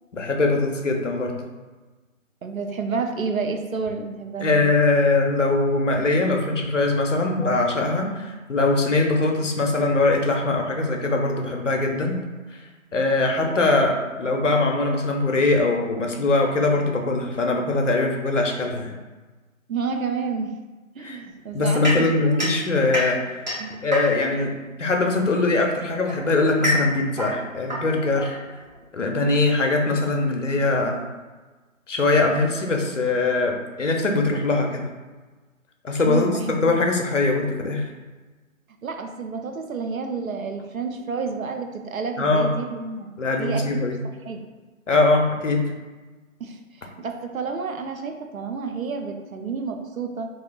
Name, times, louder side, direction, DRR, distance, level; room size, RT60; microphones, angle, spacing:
voice 1, 0.1-1.4 4.4-12.2 12.9-18.9 21.0-21.2 21.5-23.2 23.8-28.4 28.9-31.0 31.9-34.9 35.8-37.9 42.2-42.5 43.2-44.0 44.9-45.7, left 2 dB, 60° left, 2 dB, 0.6 m, -22 dB
voice 2, 2.4-4.7 19.7-20.5 21.0-22.4 23.6-23.7 36.0-36.8 38.8-43.1 43.4-43.8 44.2-44.4 46.4-50.3, right 5 dB, 75° right, 5 dB, 0.6 m, -30 dB
sound 1, 21.8-24.4 25.5-28.8, left 1 dB, 35° right, 0.7 m, -28 dB
3.7 x 2.8 x 2.3 m, 1.3 s
figure-of-eight pair, 160°, 41 cm